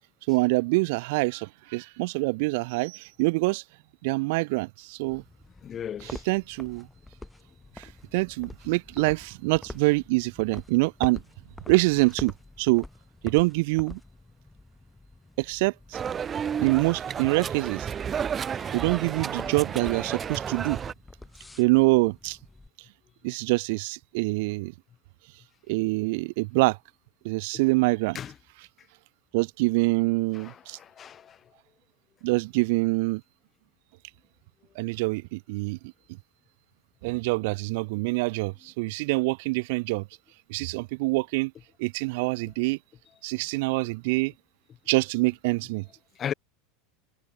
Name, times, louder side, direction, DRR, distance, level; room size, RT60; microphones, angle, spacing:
voice 1, 0.3-3.6 4.0-5.2 6.0-6.9 7.8-11.2 11.7-12.8 13.2-14.0 15.4-16.0 16.6-17.9 18.7-20.8 21.6-22.4 23.2-24.7 25.7-26.8 27.2-28.2 28.6-28.7 29.3-30.8 32.2-33.2 34.7-35.9 37.0-40.1 40.5-41.5 41.8-42.8 43.2-44.3 44.9-45.9, right 25 dB, 65° right, 2.8 m, -25 dB
sound 1, 5.0-22.7, left 2 dB, 10° left, 6.1 m, -46 dB
voice 2, 5.6-6.2 18.6-18.7 28.1-28.3 30.4-31.4 46.2-46.3, left 9 dB, 35° left, 2.9 m, -36 dB
sound 2, 15.9-20.9, right 7 dB, 30° right, 2.9 m, -32 dB
hypercardioid pair, 90°, 0 cm